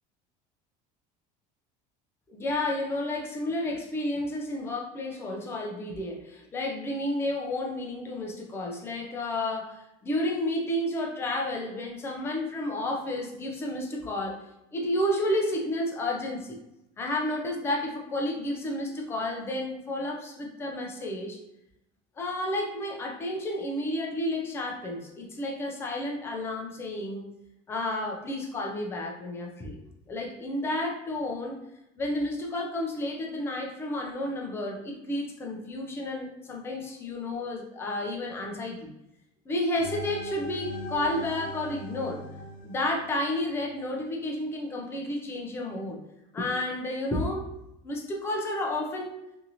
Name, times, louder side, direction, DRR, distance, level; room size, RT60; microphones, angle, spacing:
voice 1, 2.3-14.4 14.7-16.6 17.0-21.4 22.2-27.3 27.7-29.8 30.1-31.6 32.0-38.9 39.5-42.2 42.6-46.0 46.3-47.5 47.8-49.2, left 1 dB, 15° left, 0 dB, 0.4 m, -31 dB
sound 1, 39.8-43.8, right 1 dB, 90° left, 0.8 m, -41 dB
2.8 x 2.6 x 2.6 m, 0.87 s
cardioid pair, 175°, 18 cm